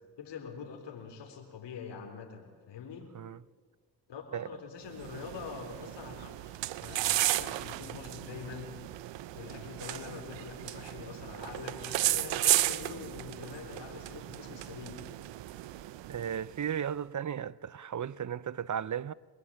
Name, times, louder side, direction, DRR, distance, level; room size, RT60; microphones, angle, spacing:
voice 1, 0.2-3.1 4.1-8.7 9.3-15.0, left 6 dB, 75° left, 4.2 m, -44 dB
sound 1, 4.9-16.7, right 16 dB, 85° right, 1.0 m, -34 dB
voice 2, 16.1-19.1, right 8 dB, 45° right, 0.8 m, -35 dB
26.0 x 22.0 x 8.9 m
supercardioid pair, 50°, 42 cm